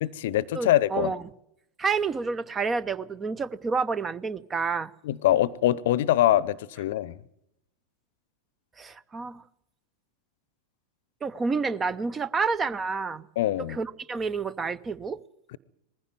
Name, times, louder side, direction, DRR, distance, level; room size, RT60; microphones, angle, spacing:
voice 1, 0.0-1.1 5.0-7.1 13.4-13.8 15.5-15.6, left 13 dB, 55° left, 0.8 m, -24 dB
voice 2, 0.5-1.2 1.8-4.9 8.8-9.4 11.2-13.2 13.7-15.2, right 4 dB, 20° right, 0.7 m, -29 dB
20.0 x 15.5 x 9.4 m
figure-of-eight pair, 90°, 0 cm